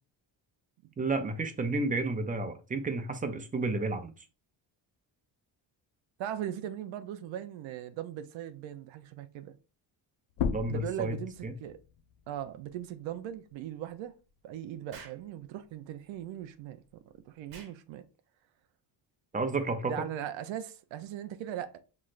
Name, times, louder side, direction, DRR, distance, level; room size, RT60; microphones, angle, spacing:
voice 1, 1.0-4.1 10.5-11.2 11.4-11.5 19.3-19.9, right 2 dB, 20° right, 0.5 m, -31 dB
voice 2, 6.2-9.5 10.7-11.8 12.3-14.1 14.4-16.8 17.3-18.0 19.8-21.8, right 10 dB, 90° right, 0.6 m, -39 dB
sound 1, 10.3-15.5 15.9-17.7, left 6 dB, 80° left, 0.7 m, -40 dB
Explosion, 14.9-15.3 17.5-17.8, right 5 dB, 55° right, 1.1 m, -49 dB
6.0 x 3.1 x 2.4 m
cardioid pair, 150°, 45 cm